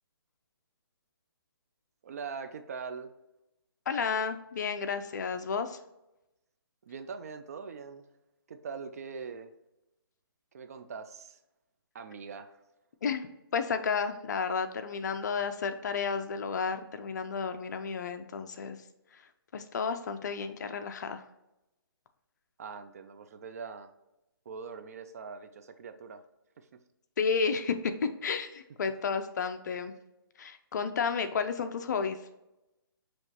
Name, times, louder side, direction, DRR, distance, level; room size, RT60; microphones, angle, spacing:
voice 1, 2.0-3.1 6.9-8.1 8.5-9.5 10.5-11.4 11.9-12.6 22.6-23.9 24.5-26.2 26.6-26.8, right 5 dB, 40° right, 9 dB, 0.4 m, -42 dB
voice 2, 3.9-5.8 13.0-18.8 19.5-21.2 27.2-29.9 30.4-32.2, left 5 dB, 45° left, 9 dB, 0.5 m, -32 dB
6.3 x 3.0 x 2.9 m, 0.92 s
hypercardioid pair, 155°, 13 cm